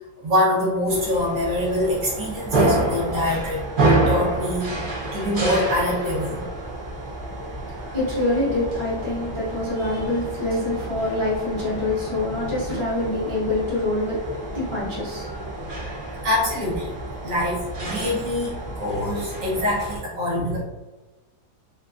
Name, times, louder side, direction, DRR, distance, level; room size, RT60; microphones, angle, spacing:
voice 1, 0.2-4.8 5.1-6.5 16.2-16.9 17.2-20.6, left 1 dB, 55° right, -5 dB, 1.1 m, -24 dB
sound 1, 0.9-20.0, right 2 dB, 85° right, 0.4 m, -28 dB
voice 2, 7.6-15.9, left 2 dB, 45° left, -10 dB, 0.4 m, -26 dB
2.9 x 2.4 x 2.4 m, 1.2 s
omnidirectional pair, 1.9 m